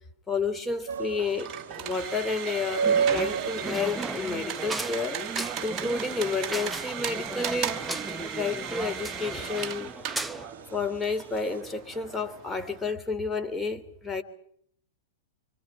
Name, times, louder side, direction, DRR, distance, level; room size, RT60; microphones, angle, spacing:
voice 1, 0.3-5.2 5.6-9.9 10.7-14.2, left 4 dB, 10° left, 5 dB, 3.0 m, -31 dB
sound 1, 0.9-11.6, right 7 dB, 65° right, 1.2 m, -33 dB
sound 2, 1.2-12.9, right 8 dB, 35° right, 1.6 m, -37 dB
sound 3, 2.8-10.5, right 2 dB, 5° right, 0.9 m, -36 dB
29.5 x 24.5 x 4.9 m, 0.67 s
figure-of-eight pair, 100°, 0 cm